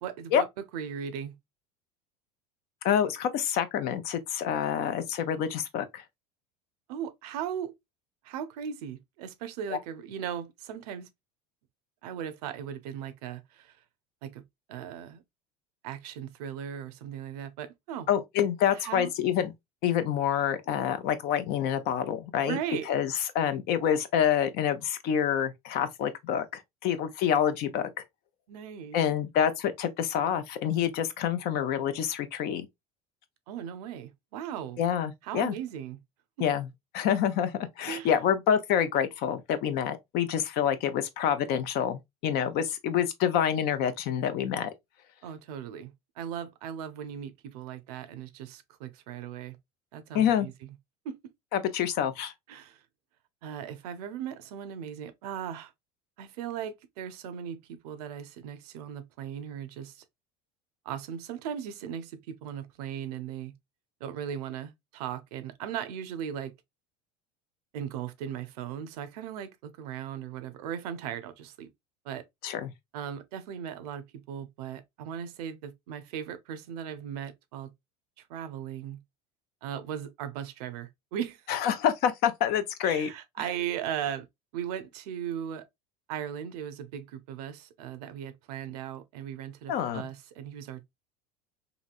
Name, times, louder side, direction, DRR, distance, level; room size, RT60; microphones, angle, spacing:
voice 1, 0.0-0.5 0.7-1.3 6.9-7.7 8.2-11.1 12.0-13.7 14.2-14.4 14.7-15.2 15.8-18.1 18.7-19.1 22.4-23.0 28.5-29.0 33.5-34.8 35.2-36.0 36.4-36.5 37.9-38.1 45.2-49.6 49.9-50.5 51.0-51.2 52.5-52.8 53.4-55.7 56.2-60.0 60.9-63.5 64.0-66.5 67.7-71.7 72.0-72.2 72.9-77.7 78.3-79.0 79.6-81.4 82.8-84.3 84.5-85.6 86.1-90.8, right 9 dB, 75° right, 0.5 m, -38 dB
voice 2, 2.8-6.0 9.7-9.8 18.1-19.5 19.8-22.6 22.9-27.9 28.9-32.7 34.8-35.5 36.4-36.7 36.9-44.7 50.1-50.5 51.5-52.3 72.4-72.7 81.5-83.1 89.7-90.0, left 9 dB, 55° left, 0.6 m, -27 dB
2.9 x 2.7 x 2.4 m
supercardioid pair, 95°, 20 cm